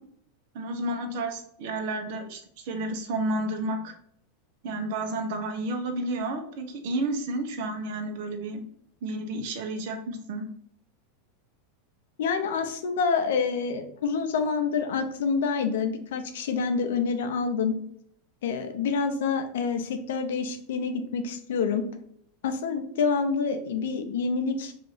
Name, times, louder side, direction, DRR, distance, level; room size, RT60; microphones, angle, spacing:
voice 1, 0.5-3.9 4.6-8.6 9.0-10.5, right 2 dB, 65° right, 5 dB, 0.7 m, -31 dB
voice 2, 12.2-17.8 18.4-21.8 22.4-24.7, left 5 dB, 75° left, 7 dB, 0.6 m, -27 dB
2.8 x 2.6 x 4.0 m, 0.67 s
hypercardioid pair, 105°, 0 cm